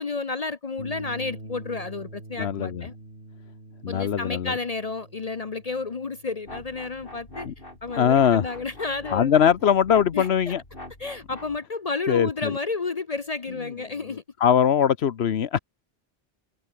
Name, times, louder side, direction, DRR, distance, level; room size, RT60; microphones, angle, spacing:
voice 1, 0.0-2.9 3.9-7.5 7.8-9.3 10.1-10.5 11.0-14.2, left 4 dB, 40° left, 0.8 m, -31 dB
sound 1, 0.8-9.3, right 2 dB, 85° right, 4.9 m, -46 dB
voice 2, 2.4-2.9 3.8-4.5 7.5-7.6 8.0-8.5 9.1-10.6 12.1-12.5 14.4-15.6, left 8 dB, 80° left, 1.1 m, -21 dB
sound 2, 6.5-11.6, left 1 dB, 60° left, 6.1 m, -43 dB
open air
omnidirectional pair, 1.1 m